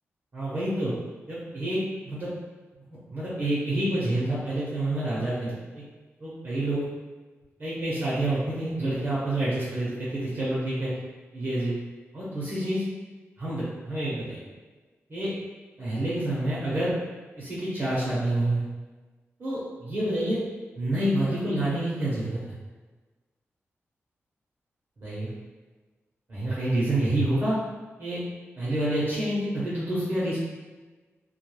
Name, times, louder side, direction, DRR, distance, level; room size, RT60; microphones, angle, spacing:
voice 1, 0.3-0.9 1.3-2.3 3.1-5.8 6.2-6.8 7.6-10.9 11.3-11.7 12.1-12.8 13.4-14.4 15.1-15.3 15.8-16.9 17.4-18.6 19.4-20.4 20.8-22.4 25.0-25.3 26.3-27.6 28.0-28.2 28.6-30.4, right 1 dB, 45° right, -8 dB, 0.7 m, -28 dB
2.2 x 2.2 x 3.0 m, 1.3 s
wide cardioid pair, 135°, 5 cm